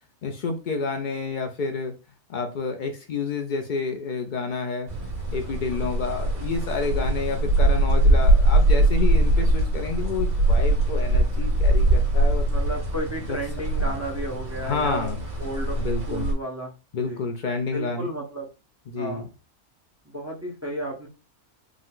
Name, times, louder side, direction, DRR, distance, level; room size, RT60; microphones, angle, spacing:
voice 1, 0.2-1.9 2.3-4.9 5.3-12.5 13.3-13.4 13.8-13.9 14.6-15.2 15.8-16.3 16.9-18.1 18.9-19.3, left 4 dB, 80° left, 5 dB, 0.4 m, -29 dB
sound 1, 4.9-16.3, right 1 dB, 70° right, 2.3 m, -22 dB
voice 2, 12.5-15.1 15.4-15.8 16.1-16.7 17.0-17.2 17.7-18.5 19.0-19.2 20.1-21.1, right 1 dB, 15° right, 0 dB, 0.7 m, -33 dB
5.0 x 2.1 x 3.7 m, 0.31 s
omnidirectional pair, 1.5 m